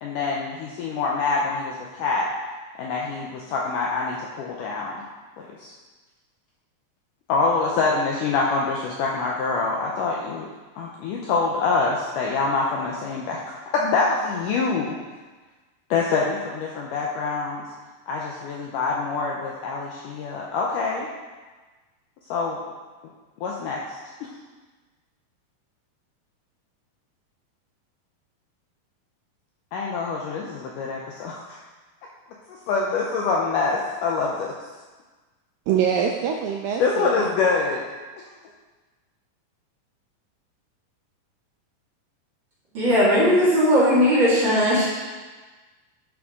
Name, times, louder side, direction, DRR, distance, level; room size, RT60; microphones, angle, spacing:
voice 1, 0.0-2.3 2.8-5.0 5.4-5.7 7.3-10.5 10.8-13.4 13.7-15.0 15.9-17.6 18.1-21.1 22.3-22.6 23.4-24.0 29.7-31.6 32.5-34.5 36.8-37.8, left 4 dB, 90° left, -2 dB, 1.8 m, -25 dB
voice 2, 35.7-37.2, right 8 dB, 85° right, 1 dB, 2.0 m, -24 dB
voice 3, 42.7-44.9, equal, 40° right, -8 dB, 1.9 m, -18 dB
9.8 x 6.2 x 3.7 m, 1.3 s
omnidirectional pair, 4.5 m